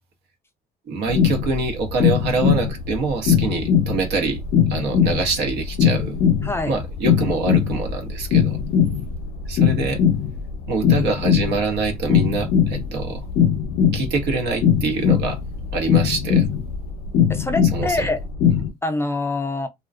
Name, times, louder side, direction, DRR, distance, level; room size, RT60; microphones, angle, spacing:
voice 1, 0.9-4.4 4.7-6.2 6.7-8.6 9.5-10.0 10.7-13.2 13.9-15.4 15.7-16.4 17.7-18.1, right 4 dB, 80° right, 0.8 m, -25 dB
sound 1, 1.1-18.7, left 8 dB, 80° left, 0.5 m, -20 dB
voice 2, 6.4-6.7 17.3-18.2 18.8-19.7, left 2 dB, 15° left, 0.4 m, -25 dB
2.4 x 2.1 x 2.4 m
cardioid pair, 110°, 17 cm